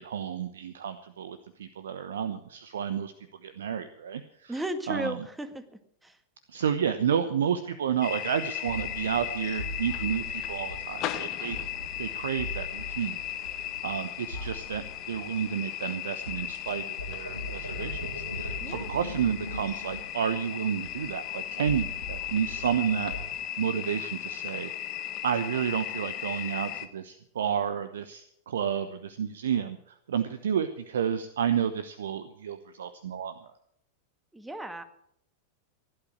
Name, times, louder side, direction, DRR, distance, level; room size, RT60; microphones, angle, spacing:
voice 1, 0.0-3.1 3.4-5.3 6.5-11.6 12.0-13.2 13.5-33.5, right 8 dB, 65° right, 11 dB, 0.9 m, -31 dB
voice 2, 4.5-6.2 18.6-18.9 34.3-34.8, right 1 dB, 5° right, 8 dB, 1.7 m, -35 dB
sound 1, 8.0-26.9, left 12 dB, 35° left, 1.2 m, -36 dB
sound 2, 8.7-15.9 16.2-23.2, equal, 85° left, 2.6 m, -41 dB
16.5 x 11.5 x 6.4 m, 0.71 s
figure-of-eight pair, 90°, 0 cm